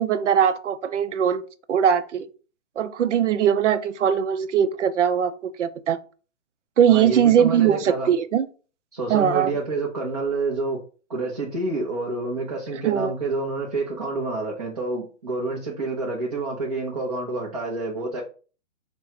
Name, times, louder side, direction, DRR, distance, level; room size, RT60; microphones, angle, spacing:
voice 1, 0.0-1.4 1.7-2.3 2.8-6.0 6.8-8.5 9.1-9.5 12.8-13.1, right 9 dB, 65° right, 0.6 m, -20 dB
voice 2, 6.9-8.1 8.9-10.8 11.1-18.2, right 3 dB, 30° right, 0.7 m, -28 dB
5.2 x 2.2 x 4.6 m
hypercardioid pair, 180°, 39 cm